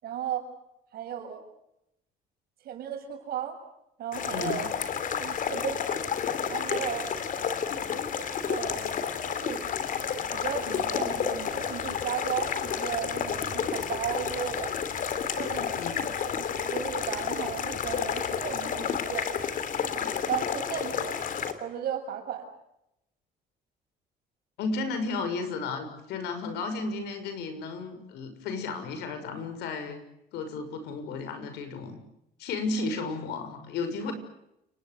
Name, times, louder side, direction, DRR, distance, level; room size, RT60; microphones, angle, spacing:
voice 1, 0.0-0.5 0.9-1.5 2.6-3.6 4.0-4.7 5.2-5.9 6.5-7.1 8.5-8.9 9.2-9.7 10.3-14.7 15.4-15.8 16.0-19.3 19.8-19.9 20.3-21.2 21.6-22.5 32.7-32.8, right 9 dB, 65° right, 5 dB, 7.1 m, -35 dB
sound 1, 4.1-21.5, left 7 dB, 55° left, 3.3 m, -31 dB
voice 2, 4.3-4.7 15.8-16.0 24.6-30.0 30.3-32.0 32.4-34.1, left 3 dB, 80° left, 9 dB, 6.5 m, -33 dB
29.5 x 20.5 x 8.0 m, 0.82 s
cardioid pair, 110°, 17 cm